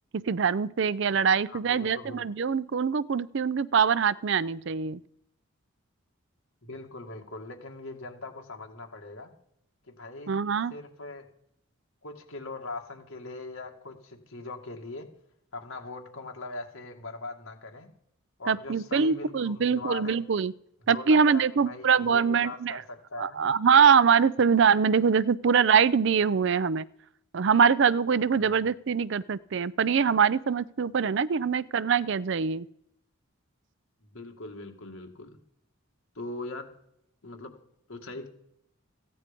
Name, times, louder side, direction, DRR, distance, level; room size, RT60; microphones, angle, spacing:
voice 1, 0.1-5.0 10.3-10.7 18.5-20.5 20.9-22.8 23.2-26.9 27.3-32.7, right 6 dB, 55° right, 18 dB, 0.4 m, -23 dB
voice 2, 1.5-2.2 6.6-9.3 9.9-10.3 10.7-11.3 12.0-15.1 15.5-17.9 18.4-20.2 20.9-23.5 28.4-28.6 34.0-35.4 36.2-36.7 37.2-37.5 37.9-38.3, left 3 dB, 75° left, 2 dB, 2.0 m, -41 dB
15.0 x 9.6 x 5.2 m, 0.77 s
head